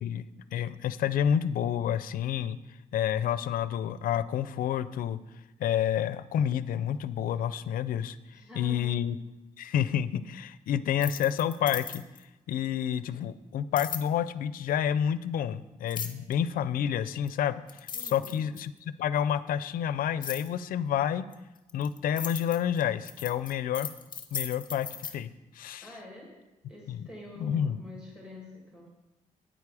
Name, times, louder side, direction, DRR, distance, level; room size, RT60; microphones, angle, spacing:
voice 1, 0.5-2.6 2.9-5.2 5.6-9.2 9.6-12.0 12.5-18.7 19.0-21.2 21.7-23.9 24.3-24.9 25.1-25.3 25.5-25.9 26.9-27.1 27.4-27.8, left 9 dB, 85° left, 15 dB, 0.5 m, -29 dB
voice 2, 8.3-9.0 17.9-18.4 25.8-26.4 26.7-28.9, left 1 dB, 5° right, -4 dB, 2.2 m, -47 dB
sound 1, 10.9-12.2 13.8-14.1 15.9-16.3 17.3-17.4 17.7-18.8 20.2-20.5 21.3-25.1, left 6 dB, 30° left, 0.7 m, -37 dB
9.1 x 8.4 x 4.8 m, 1.0 s
wide cardioid pair, 160°, 14 cm